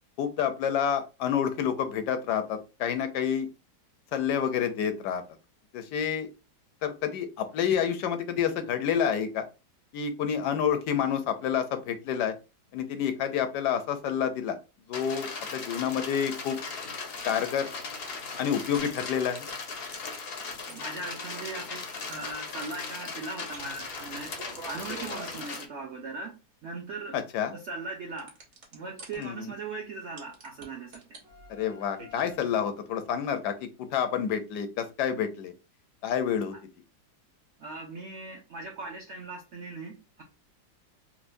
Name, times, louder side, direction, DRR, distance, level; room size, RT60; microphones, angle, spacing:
voice 1, 0.2-3.5 4.1-5.2 5.7-6.3 6.8-9.4 9.9-12.4 12.7-14.6 14.9-16.6 17.2-17.7 18.4-19.5 27.1-27.6 29.2-29.5 31.5-35.5 36.0-36.6, left 8 dB, 80° left, 1.1 m, -28 dB
sound 1, 14.9-25.6, left 4 dB, 60° left, 0.6 m, -38 dB
sound 2, 16.9-18.1 18.4-19.1 19.4-19.5 19.9-21.3 21.6-22.7 22.9-23.0 23.2-23.3 23.5-25.4 28.1-29.2 30.2-30.6 30.9-32.4, right 1 dB, 50° right, 1.1 m, -45 dB
voice 2, 20.7-21.8 22.1-24.4 24.7-26.3 26.6-27.2 27.5-28.3 28.7-31.2 37.6-40.2, right 3 dB, 65° right, 0.7 m, -39 dB
4.4 x 2.1 x 2.5 m
omnidirectional pair, 1.8 m